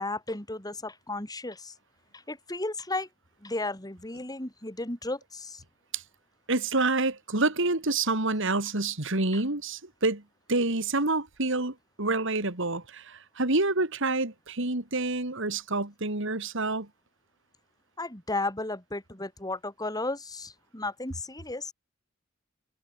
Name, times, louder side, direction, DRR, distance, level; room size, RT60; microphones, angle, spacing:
voice 1, 0.0-1.7 2.1-3.1 3.4-5.6 18.0-21.7, left 2 dB, 20° left, 4.2 m, -34 dB
voice 2, 6.5-10.2 10.5-16.9, right 2 dB, 65° right, 3.2 m, -28 dB
head